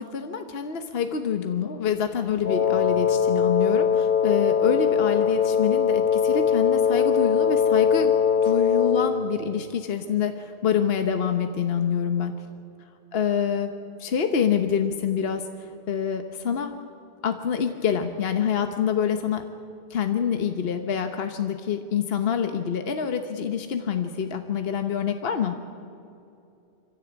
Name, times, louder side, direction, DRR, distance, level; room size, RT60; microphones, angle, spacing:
voice 1, 0.0-8.1 8.4-12.3 13.1-13.7 14.0-16.8 17.2-19.5 19.9-25.5, left 7 dB, 65° left, 7 dB, 1.2 m, -26 dB
Wind instrument woodwind instrument, 2.4-9.2, left 7 dB, 45° left, 1.4 m, -21 dB
25.0 x 15.0 x 8.2 m, 2.7 s
omnidirectional pair, 1.1 m